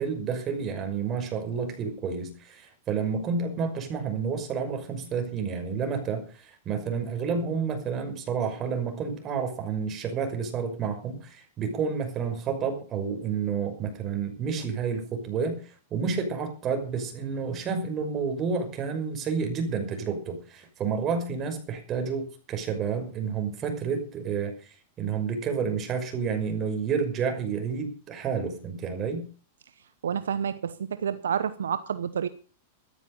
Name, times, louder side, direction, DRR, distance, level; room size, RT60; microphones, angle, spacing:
voice 1, 0.0-15.6 15.9-24.5 25.0-29.3, right 6 dB, 35° right, 6 dB, 5.9 m, -30 dB
voice 2, 30.0-32.3, right 8 dB, 80° right, 14 dB, 0.9 m, -29 dB
14.0 x 14.0 x 5.5 m, 0.38 s
hypercardioid pair, 105°, 0 cm